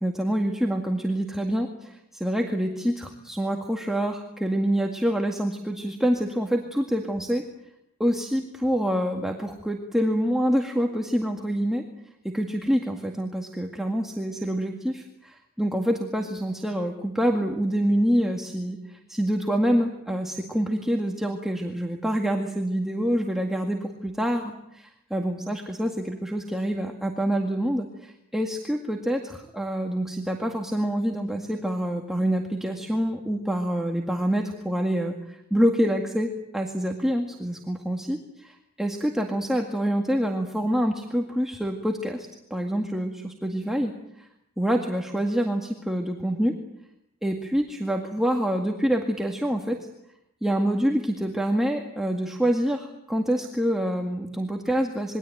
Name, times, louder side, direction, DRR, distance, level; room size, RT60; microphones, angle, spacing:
voice 1, 0.0-7.5 8.0-11.9 12.2-44.3 44.6-46.6 47.2-49.8 50.4-55.2, equal, ahead, 2 dB, 2.0 m, -26 dB
27.5 x 22.5 x 9.2 m, 0.82 s
head